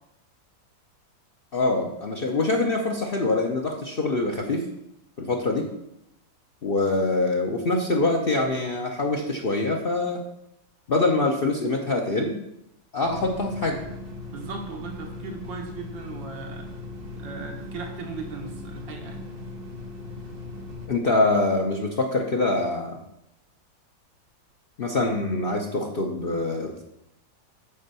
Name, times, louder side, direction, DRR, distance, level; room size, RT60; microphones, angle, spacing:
voice 1, 1.5-4.6 5.2-5.7 6.6-10.2 10.9-12.4 12.9-13.8 20.9-23.0 24.8-26.8, left 2 dB, 60° left, 1 dB, 0.6 m, -24 dB
sound 1, 13.0-20.9, left 2 dB, 35° right, 1.2 m, -38 dB
voice 2, 14.3-16.7 17.1-19.2, right 4 dB, 75° right, 2 dB, 2.0 m, -38 dB
6.9 x 4.5 x 6.8 m, 0.82 s
omnidirectional pair, 2.0 m